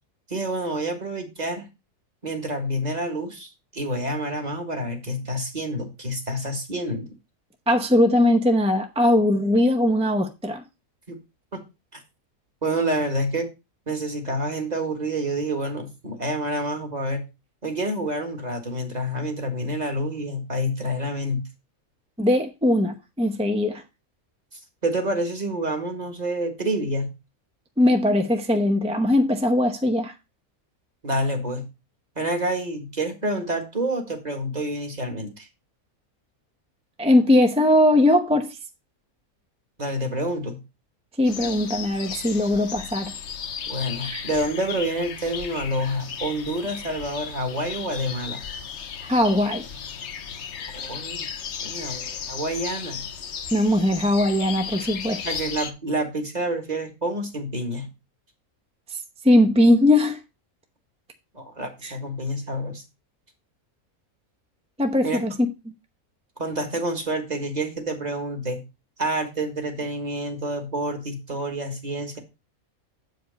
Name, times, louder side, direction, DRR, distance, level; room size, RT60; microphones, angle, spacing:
voice 1, 0.3-1.7 2.2-7.1 11.1-11.2 11.5-11.6 11.9-12.0 12.6-13.5 13.9-17.2 17.6-21.4 24.8-27.1 31.0-31.6 32.1-35.5 39.8-40.6 43.7-48.4 50.7-51.3 51.6-53.1 55.2-57.9 61.3-62.8 65.0-65.2 66.4-68.6 69.0-72.2, right 1 dB, 30° right, 1.7 m, -28 dB
voice 2, 7.7-10.6 22.2-23.8 27.8-30.1 37.0-38.5 41.2-43.1 44.0-44.2 49.1-49.6 53.5-55.2 58.9-59.0 59.2-60.2 61.8-61.9 64.8-65.3, left 1 dB, 5° right, 0.5 m, -20 dB
sound 1, 41.2-55.7, left 7 dB, 55° left, 1.1 m, -35 dB
7.8 x 5.1 x 5.1 m
omnidirectional pair, 1.5 m